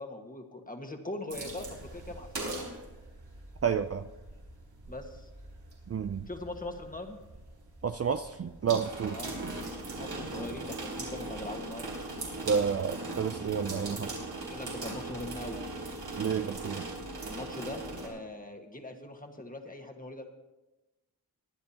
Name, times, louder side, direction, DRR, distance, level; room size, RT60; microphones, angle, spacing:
voice 1, 0.0-2.5 4.9-5.3 6.3-7.2 9.1-9.4 9.9-11.9 14.3-15.6 17.2-20.2, left 2 dB, 20° left, 1.5 m, -41 dB
sound 1, 1.3-18.1, right 2 dB, 85° right, 4.0 m, -40 dB
voice 2, 3.6-4.0 5.9-6.3 7.8-9.5 12.5-14.1 16.2-16.9, right 7 dB, 40° right, 0.4 m, -30 dB
22.5 x 10.5 x 2.9 m
wide cardioid pair, 85°, 39 cm